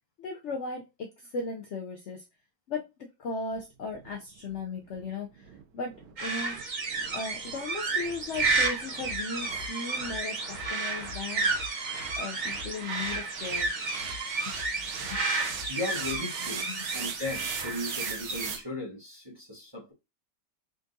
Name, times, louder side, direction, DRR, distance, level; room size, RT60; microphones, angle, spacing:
voice 1, 0.2-2.2 2.7-2.8 3.2-5.9 6.2-6.6 7.1-11.5 12.2-13.7 14.5-15.2 16.7-16.9, left 3 dB, 75° left, 0.6 m, -37 dB
sound 1, 3.5-18.6, right 7 dB, 85° right, 1.3 m, -42 dB
sound 2, 6.2-18.6, right 3 dB, 45° right, 0.6 m, -32 dB
sound 3, 8.5-16.4, left 7 dB, 35° left, 1.2 m, -47 dB
voice 2, 15.3-16.6 16.9-19.9, left 2 dB, 15° right, 1.1 m, -37 dB
3.8 x 3.5 x 2.6 m
omnidirectional pair, 1.9 m